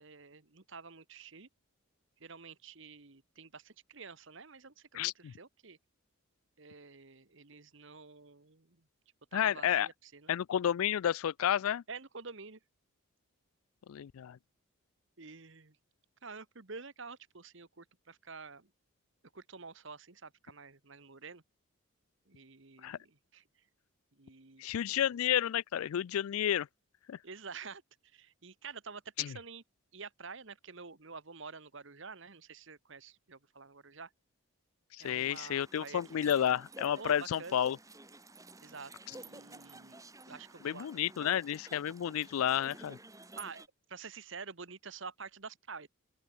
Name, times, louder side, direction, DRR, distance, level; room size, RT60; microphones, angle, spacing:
voice 1, 0.0-1.5 2.2-5.8 6.6-8.9 9.3-10.3 11.9-12.6 15.2-15.8 16.2-18.7 19.3-21.4 22.3-23.7 24.1-25.1 27.2-29.6 29.9-34.1 35.0-36.0 36.4-36.5 37.0-37.6 38.6-40.0 40.3-40.9 41.2-41.4 43.4-45.9, right 4 dB, 60° right, 1.4 m, -49 dB
voice 2, 4.9-5.3 9.3-9.9 10.3-11.8 13.9-14.4 22.8-23.0 24.6-26.7 27.1-27.2 29.2-29.3 34.9-37.8 40.6-43.0, left 10 dB, 80° left, 0.3 m, -31 dB
sound 1, 35.0-43.7, right 2 dB, 15° right, 6.9 m, -53 dB
open air
head